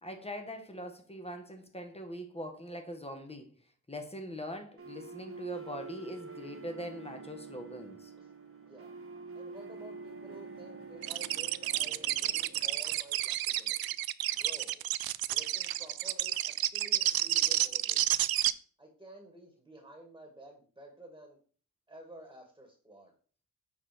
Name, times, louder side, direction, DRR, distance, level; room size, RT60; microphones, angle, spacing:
voice 1, 0.0-3.5 3.9-8.1, equal, 15° left, 1.7 m, -42 dB
sound 1, 4.8-12.8, right 4 dB, 40° right, 1.6 m, -47 dB
voice 2, 9.3-14.0 14.3-14.8 15.3-18.2 18.8-21.4 21.9-23.1, right 1 dB, 10° right, 2.2 m, -52 dB
sound 2, 11.0-18.5, right 13 dB, 85° right, 0.5 m, -30 dB
7.3 x 4.9 x 4.5 m
cardioid pair, 75°, 35 cm